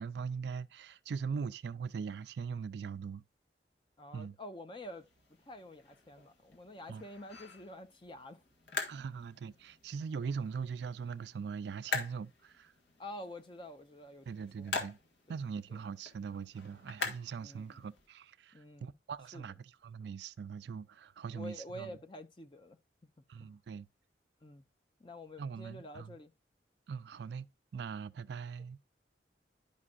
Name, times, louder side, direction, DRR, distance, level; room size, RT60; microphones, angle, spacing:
voice 1, 0.0-3.2 4.1-4.4 6.9-7.0 8.9-12.7 14.3-15.0 15.3-22.0 23.3-23.9 25.4-26.2 26.9-27.5 27.7-28.8, right 6 dB, 65° right, 0.3 m, -41 dB
voice 2, 4.0-5.1 5.5-8.4 8.9-9.2 13.0-14.7 15.3-15.4 15.7-15.8 17.4-17.9 18.5-18.9 19.3-19.5 21.3-22.8 23.4-23.6 24.4-24.6 25.0-26.3, left 1 dB, 25° left, 0.5 m, -48 dB
sound 1, 4.8-18.1, left 4 dB, 70° left, 1.6 m, -45 dB
11.0 x 5.3 x 2.4 m
head